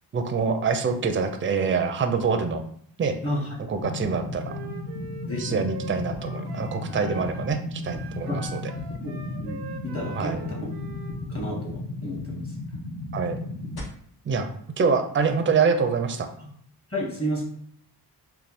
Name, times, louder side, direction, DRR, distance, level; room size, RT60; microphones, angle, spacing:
voice 1, 0.1-2.6 3.0-3.2 3.7-4.5 5.4-8.6 10.1-10.4 13.1-13.4 14.3-14.5 14.8-16.3, right 5 dB, 30° right, 6 dB, 0.5 m, -25 dB
voice 2, 3.2-3.7 5.2-5.6 8.3-8.4 9.0-9.1 9.4-9.6 9.9-10.7 11.3-12.4 16.4-16.5 16.9-17.4, equal, 35° left, -2 dB, 1.5 m, -31 dB
sound 1, 3.8-13.8, left 2 dB, 60° left, 1.0 m, -35 dB
Wind instrument woodwind instrument, 4.4-7.5 7.8-11.2, right 4 dB, 85° right, 0.6 m, -43 dB
3.4 x 2.2 x 4.1 m, 0.63 s
cardioid pair, 75°, 41 cm